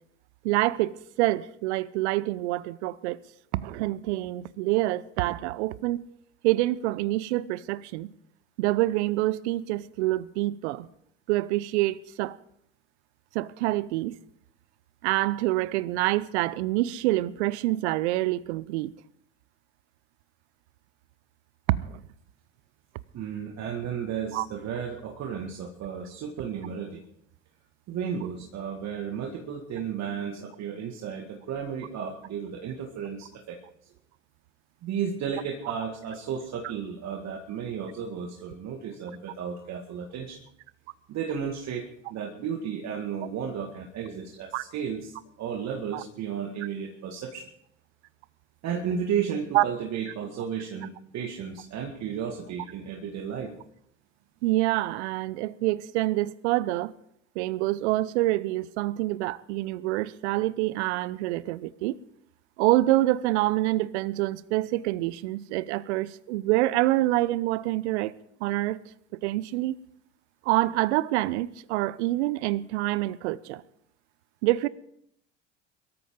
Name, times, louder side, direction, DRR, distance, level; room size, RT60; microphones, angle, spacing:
voice 1, 0.4-3.2 3.5-6.1 6.4-8.1 8.6-10.9 11.3-12.4 13.3-14.2 15.0-18.9 21.7-22.0 24.3-24.5 44.5-44.6 45.9-46.0 49.5-49.6 54.4-56.9 57.4-62.0 62.6-68.1 68.4-68.8 69.1-69.8 70.4-73.6 74.4-74.7, right 17 dB, 65° right, 0.8 m, -26 dB
voice 2, 23.1-27.0 27.9-33.6 34.8-40.4 41.1-47.5 48.6-53.5, right 7 dB, 45° right, 2.0 m, -33 dB
22.5 x 13.5 x 3.8 m
figure-of-eight pair, 70°, 38 cm